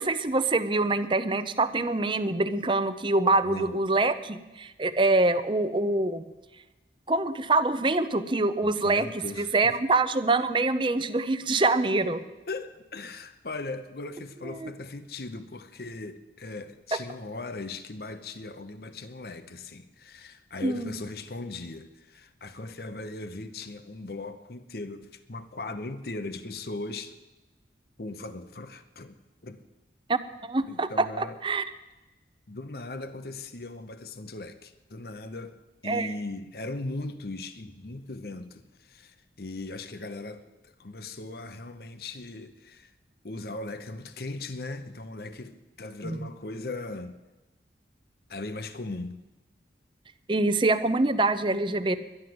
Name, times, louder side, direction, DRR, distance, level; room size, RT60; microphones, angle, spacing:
voice 1, 0.0-6.2 7.1-9.1 9.4-12.2 14.4-14.7 20.6-20.9 30.4-31.6 35.9-36.1 46.0-46.2 50.3-52.0, right 2 dB, 25° right, 0.7 m, -25 dB
voice 2, 3.4-3.9 8.6-9.8 12.5-27.2 28.0-29.2 29.4-29.6 30.7-31.4 32.5-35.5 35.8-42.9 43.2-47.1 48.3-49.2, left 2 dB, 60° left, 0.9 m, -38 dB
11.5 x 11.0 x 7.8 m
head